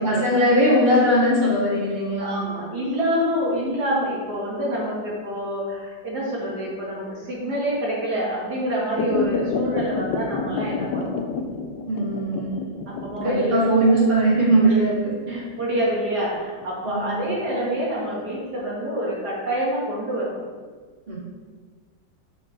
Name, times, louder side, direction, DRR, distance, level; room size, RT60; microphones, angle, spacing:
voice 1, 0.0-2.4 11.9-12.6 13.2-15.4 16.8-17.3 21.1-21.2, right 1 dB, 35° right, -7 dB, 2.5 m, -20 dB
voice 2, 2.2-11.2 13.0-13.9 14.6-14.7 15.3-20.4, equal, 65° right, -5 dB, 2.3 m, -27 dB
sound 1, 9.0-17.8 18.2-18.3, left 4 dB, 75° left, 1.3 m, -29 dB
8.8 x 5.1 x 3.3 m, 1.5 s
omnidirectional pair, 1.9 m